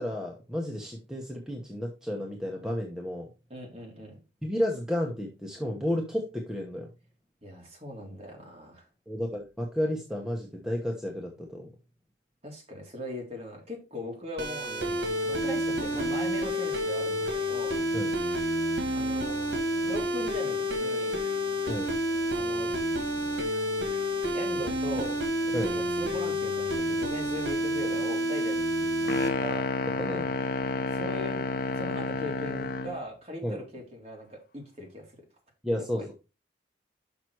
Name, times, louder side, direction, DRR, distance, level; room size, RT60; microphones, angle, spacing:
voice 1, 0.0-3.3 4.4-6.9 9.1-11.7 17.9-18.1 21.7-21.9 25.5-25.7 30.0-30.3 33.4-33.6 35.6-36.1, left 1 dB, 5° right, 0 dB, 1.0 m, -32 dB
voice 2, 3.5-4.2 7.4-8.9 12.4-17.8 18.9-19.6 19.8-21.2 22.3-22.7 24.3-25.2 25.6-29.1 29.4-29.7 30.9-31.4 31.7-35.1 36.0-36.1, left 1 dB, 35° right, -1 dB, 2.8 m, -39 dB
sound 1, 14.4-29.3, equal, 80° right, 1.9 m, -29 dB
sound 2, 29.1-33.0, left 3 dB, 50° left, 0.6 m, -30 dB
6.1 x 5.8 x 4.6 m, 0.29 s
head